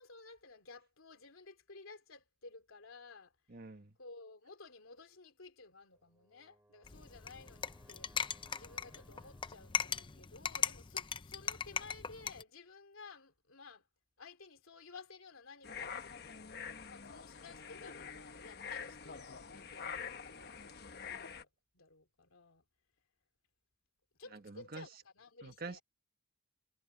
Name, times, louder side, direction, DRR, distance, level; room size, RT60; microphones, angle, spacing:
voice 1, 0.0-3.3 4.0-13.9 14.2-22.6 24.2-25.8, left 3 dB, 80° left, 2.7 m, -55 dB
voice 2, 3.5-3.9 24.3-24.9 25.4-25.8, right 3 dB, 45° right, 1.4 m, -46 dB
Brass instrument, 5.9-10.2, right 1 dB, 10° right, 7.2 m, -67 dB
sound 1, 6.8-12.4, left 7 dB, 25° left, 0.6 m, -39 dB
sound 2, 15.6-21.4, left 6 dB, 50° left, 1.2 m, -46 dB
head